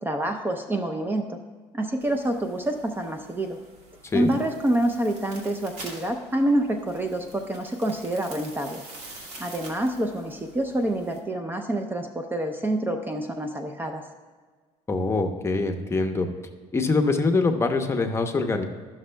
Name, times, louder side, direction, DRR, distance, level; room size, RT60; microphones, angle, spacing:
voice 1, 0.0-1.4 1.7-3.6 4.1-8.8 9.4-14.0, right 1 dB, 15° right, 5 dB, 0.5 m, -27 dB
sound 1, 2.0-11.2, right 2 dB, 65° right, 1.7 m, -46 dB
voice 2, 14.9-16.3 16.7-18.7, left 3 dB, 20° left, 5 dB, 0.8 m, -24 dB
12.5 x 6.1 x 2.2 m, 1.5 s
supercardioid pair, 90°, 12 cm